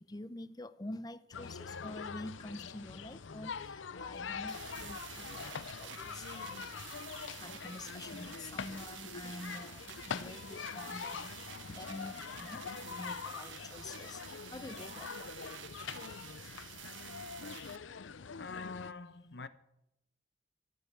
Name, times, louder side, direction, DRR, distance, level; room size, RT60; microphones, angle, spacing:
voice 1, 0.0-6.9 7.4-15.3, left 1 dB, 20° left, 0.6 m, -47 dB
sound 1, 1.3-18.9, left 6 dB, 90° left, 0.6 m, -44 dB
sound 2, 4.5-17.8, right 11 dB, 80° right, 0.7 m, -50 dB
voice 2, 18.3-19.5, left 4 dB, 60° left, 0.9 m, -45 dB
13.5 x 8.2 x 9.3 m
head